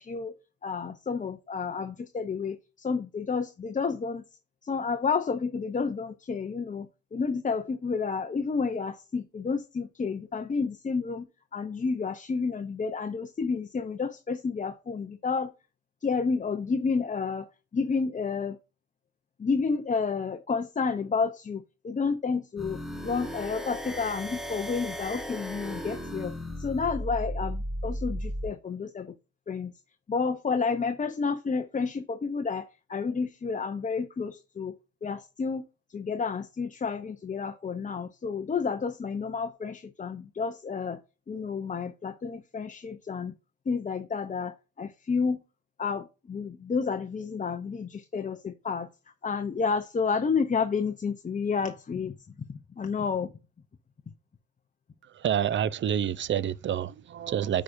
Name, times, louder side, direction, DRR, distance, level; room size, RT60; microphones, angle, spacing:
voice 1, 0.0-4.2 4.6-11.2 11.5-15.5 16.0-18.6 19.4-29.1 29.5-29.7 30.1-34.7 35.0-35.6 35.9-41.0 41.3-43.3 43.7-45.4 45.8-48.9 49.2-52.1 52.5-53.3, left 5 dB, 25° left, 0.6 m, -30 dB
sound 1, 22.6-28.5, equal, ahead, 1.2 m, -35 dB
voice 2, 55.2-57.6, right 9 dB, 40° right, 0.5 m, -28 dB
9.4 x 5.0 x 2.6 m
cardioid pair, 90°, 30 cm